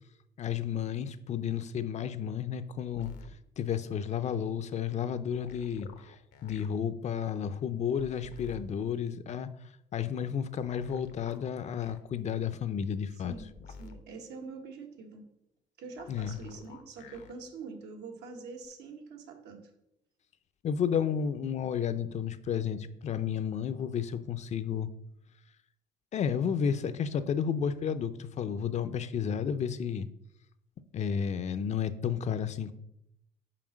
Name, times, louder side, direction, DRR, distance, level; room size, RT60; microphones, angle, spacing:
voice 1, 0.4-3.1 3.6-6.1 6.4-9.5 9.9-13.3 16.1-16.4 20.6-24.9 26.1-30.1 30.9-32.7, left 8 dB, 40° left, 12 dB, 0.5 m, -32 dB
sound 1, 2.9-3.3 5.3-6.7 8.0-8.7 10.6-12.0 13.3-14.0 16.0-17.3 18.6-18.7, left 5 dB, 80° left, 0.9 m, -50 dB
voice 2, 13.8-15.3 15.8-19.7, right 4 dB, 80° right, 2 dB, 1.4 m, -45 dB
5.8 x 4.3 x 6.2 m, 0.80 s
cardioid pair, 110°, 17 cm